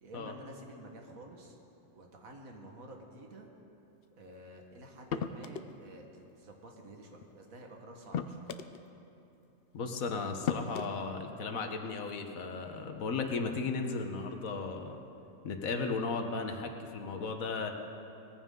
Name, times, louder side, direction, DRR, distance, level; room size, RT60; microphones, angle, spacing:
voice 1, 0.0-1.6 2.0-3.5 4.2-8.5, right 1 dB, 90° right, 2 dB, 1.9 m, -50 dB
sound 1, 5.1-5.7 7.2-7.3 8.1-8.8 9.8-9.9 10.5-10.9, left 8 dB, 55° left, 0.7 m, -35 dB
voice 2, 9.7-15.0 15.4-17.7, left 4 dB, 85° left, 5 dB, 1.5 m, -35 dB
19.0 x 14.5 x 3.8 m, 2.8 s
omnidirectional pair, 1.4 m